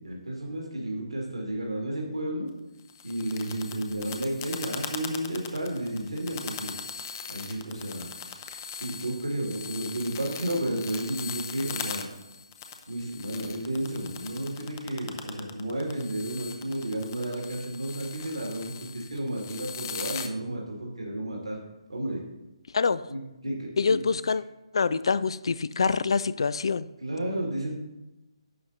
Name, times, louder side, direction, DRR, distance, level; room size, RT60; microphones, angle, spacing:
voice 1, 0.0-2.5 3.0-6.7 7.3-8.1 8.7-12.1 12.9-21.6 21.9-22.2 23.1-24.0 27.0-27.7, right 1 dB, 75° right, -1 dB, 2.1 m, -32 dB
sound 1, 2.8-20.3, left 7 dB, 30° left, 0.7 m, -40 dB
voice 2, 23.8-24.4 24.7-26.9, left 5 dB, 55° left, 16 dB, 0.4 m, -25 dB
11.0 x 7.7 x 2.7 m, 1.0 s
figure-of-eight pair, 140°, 3 cm